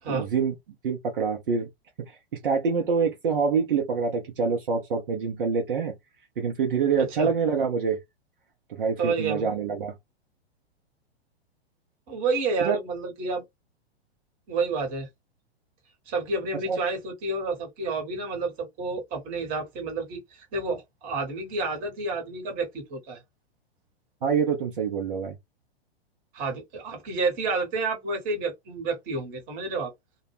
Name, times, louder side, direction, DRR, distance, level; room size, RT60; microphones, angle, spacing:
voice 1, 0.1-0.5 0.8-1.7 2.4-5.9 6.4-8.0 8.8-9.9 12.6-12.8 16.7-16.8 24.2-25.4, right 5 dB, 55° right, 0.7 m, -25 dB
voice 2, 7.0-7.3 9.0-9.5 12.1-13.4 14.5-15.1 16.1-23.2 26.3-29.9, right 3 dB, 25° right, 1.1 m, -30 dB
2.2 x 2.2 x 3.2 m
figure-of-eight pair, 105°, 32 cm